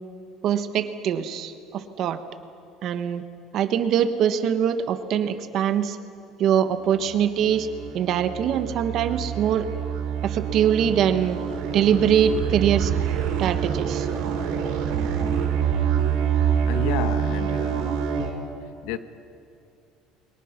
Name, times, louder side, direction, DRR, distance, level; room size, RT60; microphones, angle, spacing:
voice 1, 0.4-2.2 2.8-3.2 3.5-6.0 6.4-7.7 7.9-9.7 10.2-11.4 11.7-12.9 13.4-14.1, right 9 dB, 45° right, 1.2 m, -23 dB
sound 1, 6.9-18.3, right 8 dB, 75° right, 4.1 m, -26 dB
voice 2, 16.7-18.1 18.8-19.0, left 12 dB, 80° left, 1.1 m, -31 dB
29.5 x 23.0 x 6.0 m
cardioid pair, 175°, 0 cm